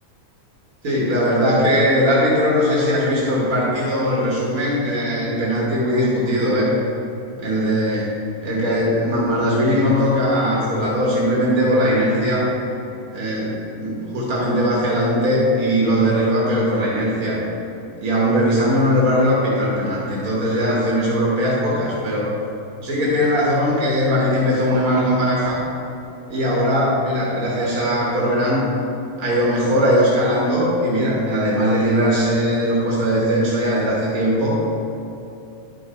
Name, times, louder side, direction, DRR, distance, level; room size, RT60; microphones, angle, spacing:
voice 1, 0.8-6.7 7.4-8.1 8.4-12.5 13.1-17.4 18.0-22.3 22.8-25.6 26.3-28.7 29.2-34.6, equal, 70° right, -6 dB, 2.0 m, -19 dB
10.5 x 5.4 x 4.3 m, 2.8 s
omnidirectional pair, 1.6 m